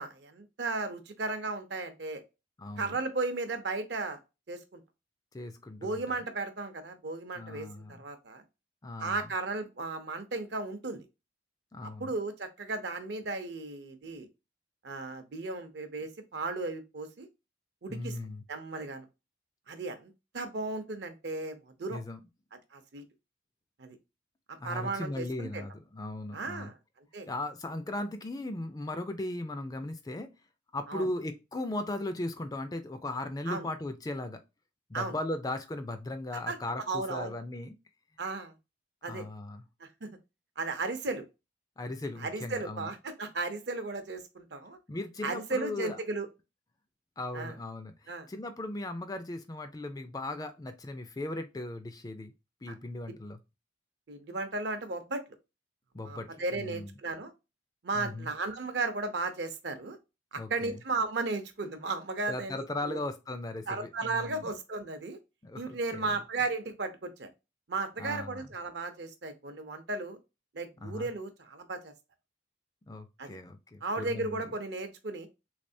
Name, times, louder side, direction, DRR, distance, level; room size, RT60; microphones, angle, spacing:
voice 1, 0.0-2.2 2.8-4.2 4.5-4.8 5.8-8.4 9.0-11.0 12.0-14.3 14.8-17.3 17.8-18.2 18.5-19.1 19.7-22.0 22.7-23.0 23.8-24.0 24.5-25.6 26.3-27.3 30.9-31.1 33.5-33.7 34.9-35.1 36.5-36.6 36.9-37.3 38.2-38.6 39.0-39.2 39.8-40.2 40.6-41.2 42.2-44.8 45.2-46.3 47.3-47.5 48.1-48.3 52.7-52.8 54.1-55.2 56.0-57.3 57.8-60.0 60.3-63.0 63.7-65.2 65.5-67.3 67.7-70.2 70.5-71.9 73.2-73.4 73.8-75.3, right 3 dB, 60° right, 0.7 m, -35 dB
voice 2, 2.6-3.0 5.3-6.2 7.4-8.0 8.8-9.3 11.7-12.1 17.9-18.4 21.9-22.2 24.6-26.7 27.3-30.3 30.7-34.4 34.9-37.7 39.1-39.6 41.8-42.9 44.9-46.0 47.2-52.3 52.6-53.4 55.9-57.0 57.9-58.3 60.4-60.8 62.3-64.5 65.4-66.1 68.0-68.5 70.8-71.1 72.9-74.5, left 2 dB, 20° left, 0.4 m, -38 dB
3.4 x 3.3 x 2.6 m
head